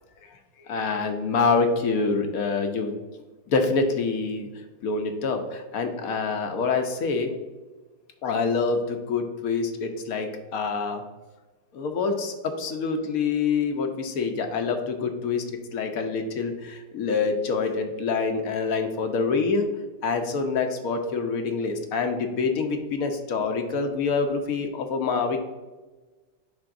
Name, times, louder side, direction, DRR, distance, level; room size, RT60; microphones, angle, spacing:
voice 1, 0.7-3.0 3.5-4.5 4.8-7.3 8.2-11.0 11.7-15.4 15.7-19.7 20.0-25.4, left 4 dB, 60° left, 5 dB, 1.0 m, -26 dB
10.5 x 3.5 x 2.5 m, 1.2 s
omnidirectional pair, 2.0 m